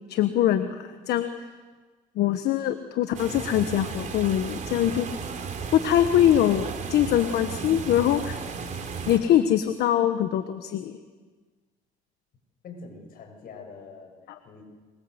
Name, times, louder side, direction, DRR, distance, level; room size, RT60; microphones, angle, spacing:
voice 1, 0.1-1.3 2.1-5.1 5.7-8.4 9.1-11.0 14.3-14.4, left 11 dB, 75° left, 9 dB, 1.3 m, -23 dB
sound 1, 3.1-9.2, right 5 dB, 45° right, 4.3 m, -34 dB
voice 2, 12.6-14.2 14.4-14.6, left 4 dB, 60° left, 4 dB, 7.4 m, -44 dB
24.5 x 24.0 x 8.1 m, 1.4 s
cardioid pair, 110°, 17 cm